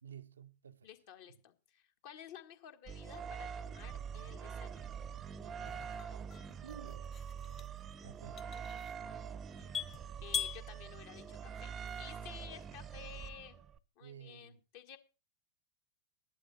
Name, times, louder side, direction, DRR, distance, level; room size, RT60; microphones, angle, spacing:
voice 1, 0.0-0.9 6.6-7.1 8.0-8.5 14.0-14.6, right 8 dB, 70° right, 0.6 m, -52 dB
voice 2, 0.8-4.9 9.6-9.7 10.2-11.7 12.0-13.6 14.0-15.0, left 9 dB, 50° left, 1.6 m, -53 dB
sound 1, 2.9-13.8, right 7 dB, 25° right, 0.7 m, -45 dB
sound 2, 4.7-12.3, left 7 dB, 30° left, 1.4 m, -44 dB
13.0 x 11.5 x 4.0 m
figure-of-eight pair, 90°, 0 cm